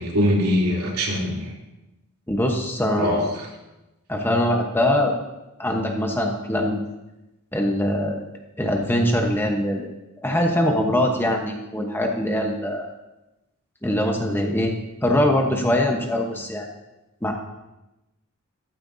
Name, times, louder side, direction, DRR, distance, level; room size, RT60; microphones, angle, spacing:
voice 1, 0.0-1.5 3.0-3.5, equal, 90° right, -3 dB, 3.1 m, -23 dB
voice 2, 2.3-3.3 4.1-5.1 5.6-6.8 7.5-8.2 8.6-9.9 10.2-12.9 13.8-14.7 15.0-16.7 17.2-17.3, left 1 dB, 10° left, 1 dB, 1.0 m, -22 dB
13.5 x 13.0 x 2.8 m, 0.99 s
head